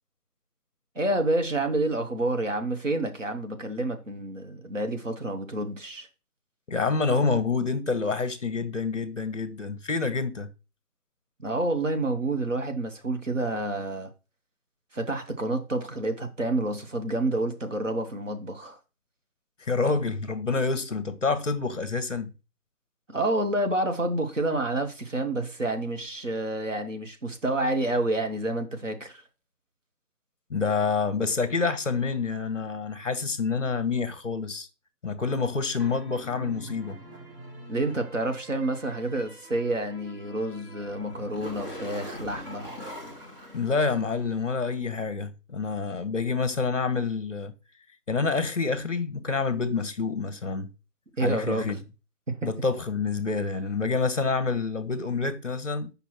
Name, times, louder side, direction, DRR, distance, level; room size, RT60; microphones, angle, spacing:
voice 1, 0.9-6.1 11.4-14.1 14.9-18.8 23.1-29.2 37.7-42.7 51.2-51.8 52.3-52.5, right 2 dB, 50° right, 0.9 m, -29 dB
voice 2, 6.7-10.5 19.6-22.3 30.5-34.7 35.0-37.0 43.5-47.5 48.1-50.7 51.2-51.8 52.4-55.9, left 4 dB, 50° left, 0.7 m, -27 dB
sound 1, 35.8-44.5, equal, 35° right, 1.3 m, -43 dB
5.8 x 5.2 x 3.1 m
figure-of-eight pair, 170°, 48 cm